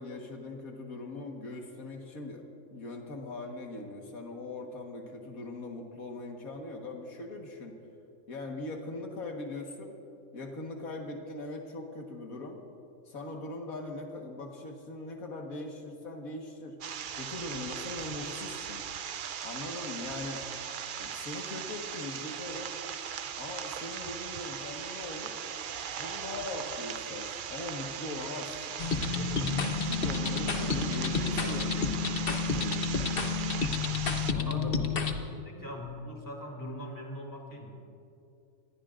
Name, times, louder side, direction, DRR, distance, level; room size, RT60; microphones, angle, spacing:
voice 1, 0.0-2.4 2.7-7.7 8.3-9.9 10.3-12.6 13.1-16.8 17.1-18.8 19.4-20.5 21.0-22.7 23.4-25.3 26.0-28.8 29.1-31.8 32.5-33.0 34.3-34.9, left 2 dB, 80° left, 1 dB, 1.9 m, -40 dB
sound 1, 16.8-34.3, right 8 dB, 60° right, 0.5 m, -39 dB
sound 2, 28.8-35.1, left 5 dB, 45° left, 1.1 m, -30 dB
voice 2, 30.5-31.6 34.4-37.8, equal, 15° left, 0 dB, 2.6 m, -41 dB
26.0 x 20.0 x 2.5 m, 2.6 s
omnidirectional pair, 1.5 m